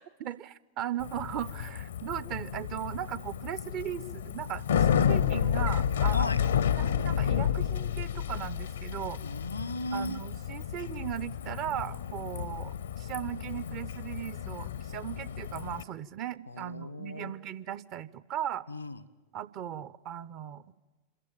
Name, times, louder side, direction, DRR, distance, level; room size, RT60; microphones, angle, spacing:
voice 1, 0.2-6.3 6.8-9.2 9.9-18.7 19.3-20.7, right 11 dB, 40° right, 17 dB, 0.6 m, -37 dB
Bicycle, 1.0-15.8, left 9 dB, 65° left, 0.7 m, -31 dB
voice 2, 9.2-10.2 16.5-17.3 18.7-19.0, left 2 dB, 85° left, 17 dB, 1.0 m, -36 dB
27.0 x 14.5 x 9.2 m, 1.2 s
figure-of-eight pair, 90°, 0 cm